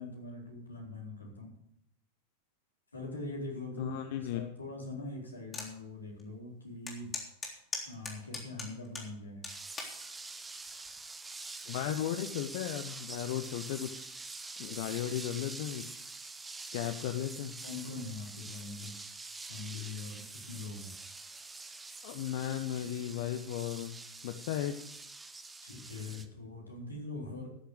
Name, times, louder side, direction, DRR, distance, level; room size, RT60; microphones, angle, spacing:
voice 1, 0.0-1.5 2.9-4.0 4.3-7.1 7.9-9.4 17.6-18.9 19.5-20.2 20.5-20.9 25.6-27.5, left 2 dB, 80° left, -1 dB, 3.9 m, -42 dB
voice 2, 3.8-4.4 11.7-14.0 14.6-16.0 16.7-17.6 22.0-24.8, left 11 dB, 50° left, 8 dB, 0.9 m, -35 dB
sound 1, 5.5-5.7 6.2-6.3 6.9-9.1 9.4-10.0 10.7-11.0, left 3 dB, 15° left, 3.4 m, -39 dB
sound 2, 9.5-26.3, right 3 dB, 10° right, 1.0 m, -46 dB
13.0 x 6.8 x 8.0 m, 0.70 s
figure-of-eight pair, 90°, 0 cm